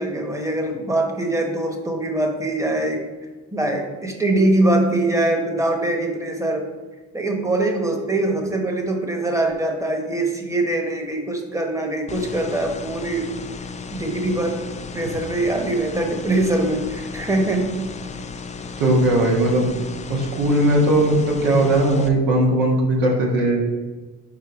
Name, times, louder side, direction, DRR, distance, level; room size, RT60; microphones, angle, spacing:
voice 1, 0.0-3.0 3.5-6.7 7.1-13.3 13.9-14.6 14.9-17.7, right 2 dB, 10° right, 2 dB, 1.0 m, -23 dB
sound 1, 12.1-22.1, left 4 dB, 20° left, 0.3 m, -35 dB
voice 2, 18.8-19.7 20.1-23.6, right 1 dB, 90° right, -1 dB, 1.5 m, -18 dB
5.0 x 4.5 x 4.7 m, 1.2 s
cardioid pair, 100°, 33 cm